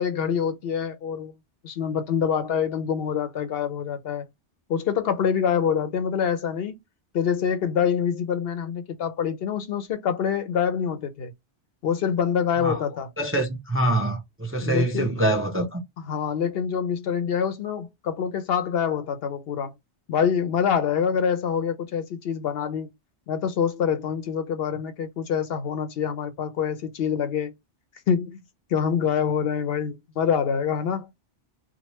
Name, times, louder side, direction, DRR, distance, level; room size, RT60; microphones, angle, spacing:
voice 1, 0.0-1.3 1.6-4.3 4.7-6.8 7.1-11.3 11.8-13.1 14.6-15.1 16.1-19.7 20.1-22.9 23.3-27.5 28.1-28.4 28.7-31.1, left 7 dB, 65° left, 0.7 m, -25 dB
voice 2, 13.2-15.8, right 1 dB, 20° right, 0.4 m, -25 dB
3.0 x 2.2 x 2.9 m
omnidirectional pair, 1.2 m